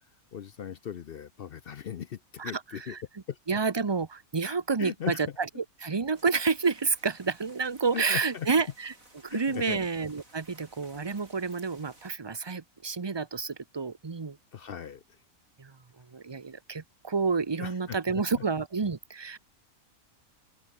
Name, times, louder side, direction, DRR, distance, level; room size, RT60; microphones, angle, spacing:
voice 1, 0.3-3.0 3.3-3.4 4.5-5.2 7.9-8.5 9.3-9.9 14.5-15.0 17.6-18.2, left 8 dB, 55° left, 0.7 m, -38 dB
voice 2, 2.4-3.0 3.5-8.9 9.2-14.4 15.6-19.4, right 4 dB, 25° right, 0.7 m, -30 dB
sound 1, 6.1-12.2, right 2 dB, 65° right, 8.3 m, -57 dB
open air
omnidirectional pair, 1.5 m